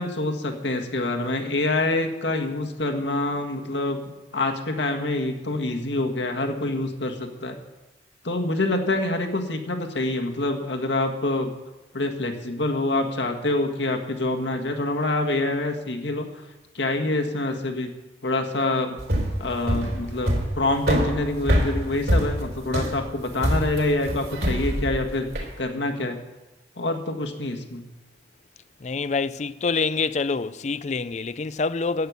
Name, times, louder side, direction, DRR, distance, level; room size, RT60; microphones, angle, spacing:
voice 1, 0.0-4.0 4.3-7.6 8.2-11.5 11.9-16.3 16.7-17.9 18.2-19.0 19.4-25.3 25.6-26.2 26.8-27.9, left 2 dB, 75° left, 1.7 m, -26 dB
sound 1, 19.0-25.5, equal, 60° right, 3.6 m, -24 dB
voice 2, 28.8-32.1, left 4 dB, 40° left, 0.4 m, -26 dB
12.5 x 8.7 x 8.2 m
head